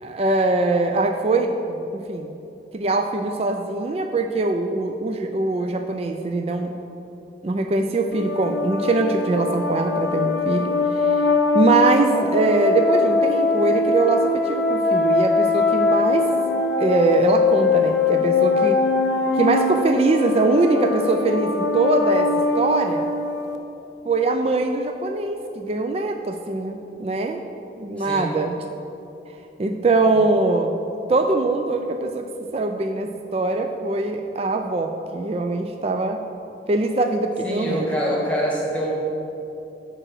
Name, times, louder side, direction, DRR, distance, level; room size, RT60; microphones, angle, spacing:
voice 1, 0.0-2.4 2.7-6.7 7.4-16.4 16.8-18.8 19.3-23.1 24.1-27.4 27.8-28.6 29.6-30.8 31.1-32.3 32.5-36.2 36.7-37.9, right 2 dB, 35° right, 5 dB, 0.3 m, -22 dB
sound 1, 8.1-23.6, left 3 dB, 75° left, 0.7 m, -22 dB
voice 2, 37.4-38.9, equal, 5° left, -3 dB, 1.5 m, -25 dB
11.0 x 3.9 x 6.2 m, 2.9 s
head